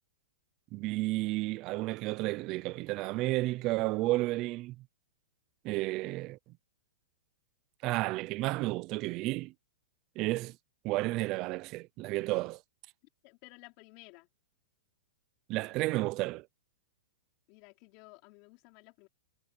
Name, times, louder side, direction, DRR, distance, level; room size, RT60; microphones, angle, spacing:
voice 1, 0.7-4.8 5.6-6.4 7.8-9.5 10.2-10.6 10.8-12.6 15.5-16.5, right 19 dB, 25° right, 0.5 m, -32 dB
voice 2, 13.2-14.3 17.5-19.1, left 25 dB, 30° left, 5.0 m, -55 dB
supercardioid pair, 175°, 0 cm